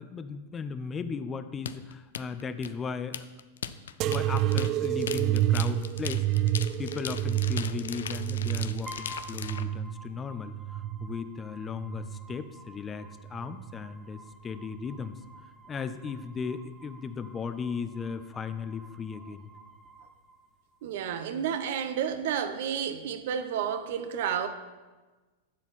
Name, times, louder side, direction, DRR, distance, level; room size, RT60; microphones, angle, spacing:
voice 1, 0.0-3.3 4.0-6.3 6.8-15.2 15.7-19.5, left 6 dB, 20° left, 11 dB, 0.6 m, -36 dB
sound 1, 1.7-9.6, left 8 dB, 80° left, 0.4 m, -38 dB
sound 2, 4.0-11.2 11.7-12.5 13.3-13.8 14.8-14.9, right 13 dB, 45° right, 0.3 m, -29 dB
sound 3, 8.9-20.9, right 2 dB, 15° right, 1.8 m, -51 dB
voice 2, 20.8-24.5, right 8 dB, 65° right, 10 dB, 0.8 m, -31 dB
11.5 x 7.3 x 4.2 m, 1.3 s
hypercardioid pair, 110°, 0 cm